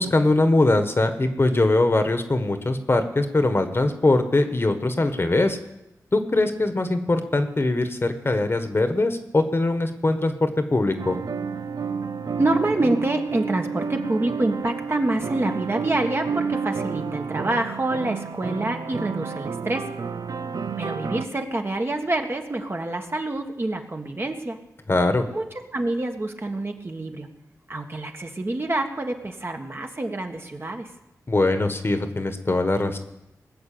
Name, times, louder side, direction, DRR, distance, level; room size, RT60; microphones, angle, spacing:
voice 1, 0.0-5.6 6.1-11.2 24.9-25.2 31.3-33.0, left 2 dB, 40° left, 8 dB, 1.4 m, -22 dB
sound 1, 11.0-21.3, right 5 dB, 70° right, 0.7 m, -30 dB
voice 2, 12.4-19.8 20.8-24.6 25.3-25.4 25.7-27.3 27.7-30.9, right 2 dB, 40° right, 3 dB, 1.6 m, -27 dB
19.5 x 6.8 x 8.6 m, 0.89 s
wide cardioid pair, 65°, 6 cm